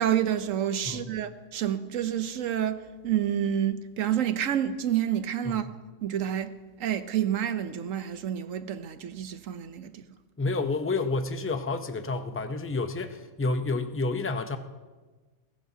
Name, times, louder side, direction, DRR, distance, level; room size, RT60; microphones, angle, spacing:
voice 1, 0.0-5.6 6.0-6.5 6.8-10.1, right 10 dB, 75° right, 1.2 m, -28 dB
voice 2, 10.4-14.6, left 3 dB, 15° left, 0.4 m, -29 dB
20.5 x 17.5 x 2.8 m
omnidirectional pair, 1.4 m